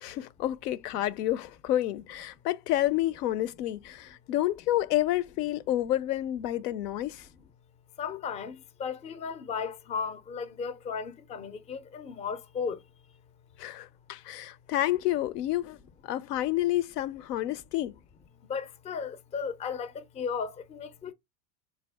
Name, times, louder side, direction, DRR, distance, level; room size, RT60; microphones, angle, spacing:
voice 1, 0.0-7.3 13.6-15.8 16.0-18.0, left 14 dB, 80° left, 0.5 m, -29 dB
voice 2, 8.0-12.8 18.5-21.1, left 6 dB, 15° left, 0.4 m, -35 dB
3.5 x 2.4 x 3.3 m
hypercardioid pair, 100°, 47 cm